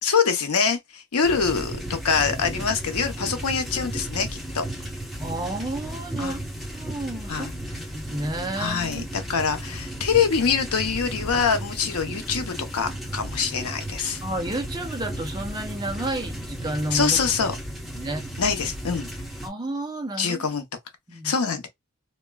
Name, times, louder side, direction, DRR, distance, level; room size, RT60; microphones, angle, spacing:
voice 1, 0.0-4.7 6.2-6.4 7.3-7.5 8.6-14.2 16.9-17.5 18.4-19.1 20.2-20.6 21.2-21.7, left 6 dB, 80° left, 0.7 m, -24 dB
sound 1, 1.2-19.5, right 1 dB, ahead, 0.8 m, -34 dB
voice 2, 5.2-7.5 7.8-9.0 14.2-17.2 17.9-18.2 19.4-20.4 21.1-21.3, right 1 dB, 20° right, 0.6 m, -31 dB
2.9 x 2.1 x 2.3 m
head